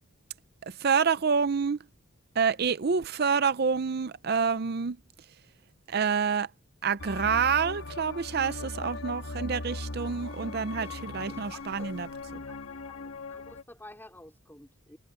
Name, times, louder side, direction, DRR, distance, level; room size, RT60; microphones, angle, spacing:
voice 1, 0.7-1.8 2.4-5.0 5.9-6.5 6.8-12.1 12.3-12.4, right 6 dB, 45° right, 0.5 m, -27 dB
sound 1, 7.0-13.6, left 2 dB, 80° left, 1.6 m, -39 dB
voice 2, 8.6-8.9 10.8-10.9 11.3-12.1 12.4-15.0, left 1 dB, 10° left, 4.4 m, -51 dB
head